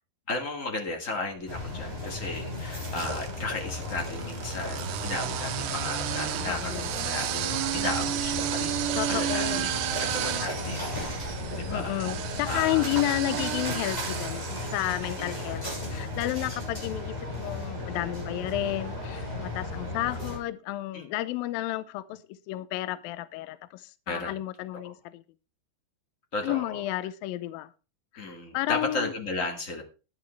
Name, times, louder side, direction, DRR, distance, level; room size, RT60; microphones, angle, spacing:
voice 1, 0.3-12.0 12.4-12.8 15.2-15.3 20.9-21.0 24.1-24.3 24.7-24.9 26.3-26.8 28.2-29.8, left 2 dB, 35° left, 1.4 m, -35 dB
sound 1, 1.5-20.4, left 2 dB, 15° left, 7.1 m, -35 dB
sound 2, 1.6-2.2 2.9-15.2, right 11 dB, 80° right, 3.0 m, -33 dB
voice 2, 6.5-6.9 9.0-9.7 11.7-22.2 22.5-25.2 26.4-27.7 28.1-29.1, left 16 dB, 80° left, 2.2 m, -32 dB
12.5 x 10.5 x 3.2 m
omnidirectional pair, 4.8 m